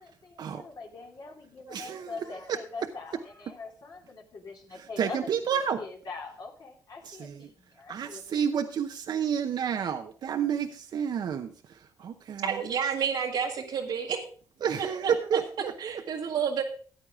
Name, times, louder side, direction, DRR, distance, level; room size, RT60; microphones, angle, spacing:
voice 1, 0.0-8.2, left 3 dB, 60° left, 1 dB, 2.6 m, -43 dB
voice 2, 1.7-2.1 2.5-2.6 5.0-5.8 7.1-7.4 7.9-11.5 12.0-12.4 14.6-15.7, right 8 dB, 65° right, 6 dB, 0.8 m, -30 dB
voice 3, 12.4-14.2 14.8-15.1 15.8-16.6, right 7 dB, 80° right, -3 dB, 1.6 m, -30 dB
14.0 x 8.7 x 3.6 m, 0.42 s
cardioid pair, 65°, 8 cm